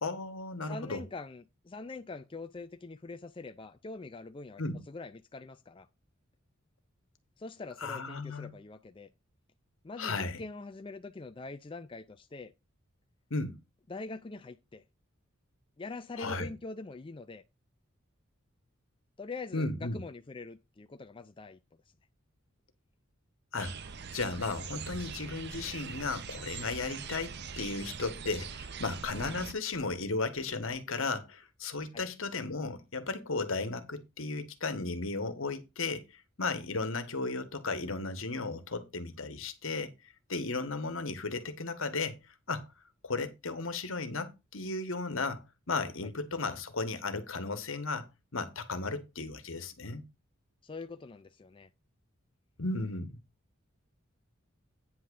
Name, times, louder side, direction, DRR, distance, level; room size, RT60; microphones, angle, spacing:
voice 1, 0.0-1.0 4.6-4.8 7.8-8.5 10.0-10.4 13.3-13.6 16.2-16.5 19.5-20.0 23.5-23.8 24.1-39.9 40.3-42.2 42.5-42.7 43.0-48.1 48.3-50.1 52.6-53.2, left 3 dB, 75° left, 1.5 m, -35 dB
voice 2, 0.6-4.6 4.9-5.9 7.4-9.1 9.8-12.5 13.9-14.8 15.8-17.4 19.2-21.6 31.9-32.0 46.0-46.1 50.6-51.7, left 3 dB, 25° left, 0.4 m, -44 dB
sound 1, 23.6-29.5, right 6 dB, 55° right, 0.7 m, -42 dB
9.4 x 3.6 x 6.9 m
head